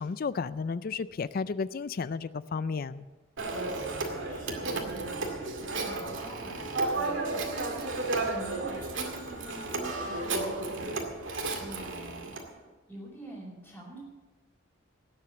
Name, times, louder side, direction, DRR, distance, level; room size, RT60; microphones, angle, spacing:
voice 1, 0.0-3.1, left 5 dB, 50° left, 16 dB, 0.4 m, -33 dB
Telephone, 3.4-12.4, right 2 dB, 70° right, 2.2 m, -33 dB
voice 2, 4.1-7.4 8.1-11.1 11.6-12.4 12.9-14.0, right 1 dB, 5° left, -10 dB, 4.4 m, -46 dB
18.5 x 7.7 x 7.1 m, 1.3 s
head